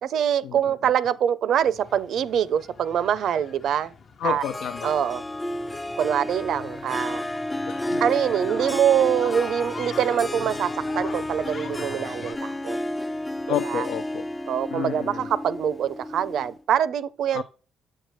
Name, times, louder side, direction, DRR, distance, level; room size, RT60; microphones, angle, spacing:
voice 1, 0.0-3.9 4.2-4.4 4.8-5.2 6.0-7.2 8.0-12.8 13.5-13.9 14.5-17.4, right 9 dB, 70° right, 0.5 m, -24 dB
sound 1, 1.6-12.3, left 5 dB, 50° left, 0.8 m, -43 dB
voice 2, 4.2-4.9 7.7-8.0 13.5-14.2 14.7-15.3 17.3-17.4, left 10 dB, 85° left, 0.4 m, -30 dB
Harp, 4.4-16.6, left 1 dB, 15° left, 0.3 m, -31 dB
7.7 x 6.5 x 3.1 m
cardioid pair, 90°, 0 cm